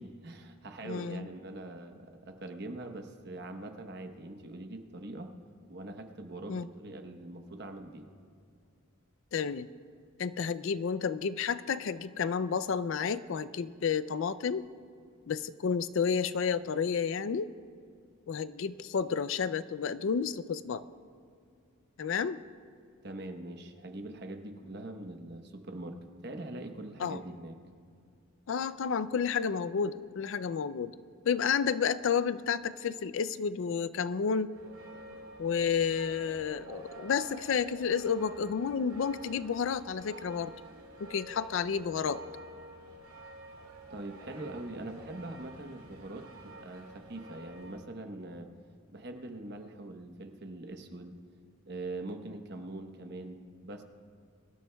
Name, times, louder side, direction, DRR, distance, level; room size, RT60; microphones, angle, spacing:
voice 1, 0.0-5.3 5.7-8.1 23.0-27.6 43.9-48.5 48.9-51.2 51.6-53.8, right 2 dB, 50° right, 5 dB, 1.0 m, -43 dB
voice 2, 0.8-1.3 6.5-6.7 9.3-9.7 10.2-14.7 15.3-17.5 18.3-20.8 22.0-22.4 27.0-27.2 28.5-30.9 31.3-34.5 35.4-40.5 41.0-42.2, left 6 dB, 60° left, 15 dB, 0.4 m, -31 dB
sound 1, 34.5-47.8, right 1 dB, 75° right, 2.2 m, -49 dB
24.0 x 13.0 x 2.3 m, 2.4 s
head